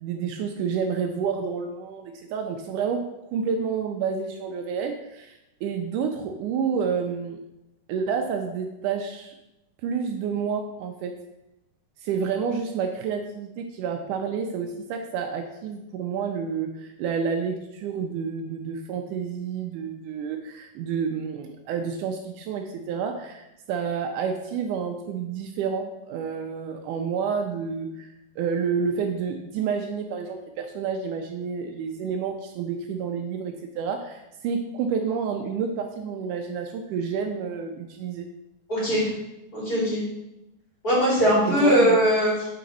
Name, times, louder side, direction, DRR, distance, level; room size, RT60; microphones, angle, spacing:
voice 1, 0.0-3.0 3.3-7.4 7.9-9.3 9.8-11.1 12.0-28.1 28.4-38.3 41.5-42.0, right 6 dB, 80° right, 4 dB, 1.8 m, -29 dB
voice 2, 38.7-39.1 39.5-40.0 40.8-42.5, equal, 25° left, -7 dB, 2.8 m, -20 dB
6.7 x 5.0 x 4.0 m, 0.90 s
omnidirectional pair, 4.1 m